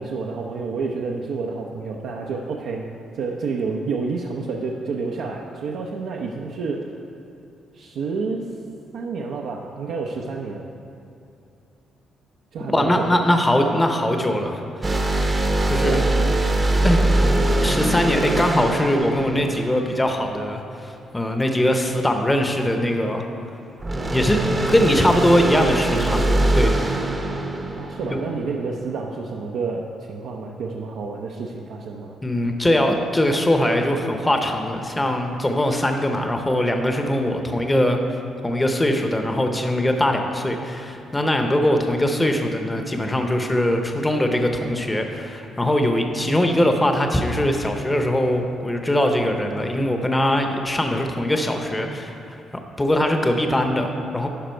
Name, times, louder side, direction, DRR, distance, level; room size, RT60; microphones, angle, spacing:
voice 1, 0.0-2.9 3.1-6.9 7.7-8.5 8.9-10.6 12.5-13.3 15.7-16.4 27.8-32.1, right 4 dB, 75° right, -1 dB, 0.6 m, -29 dB
voice 2, 12.7-14.6 14.9-15.0 15.3-16.0 16.8-17.0 17.6-23.3 24.1-24.4 24.7-26.7 28.1-28.2 32.2-52.4 52.8-54.3, left 1 dB, 15° left, 4 dB, 0.7 m, -21 dB
sound 1, 14.8-20.3 23.8-28.6, right 1 dB, 25° right, 0.7 m, -22 dB
11.5 x 5.1 x 4.5 m, 2.7 s
cardioid pair, 100°, 0 cm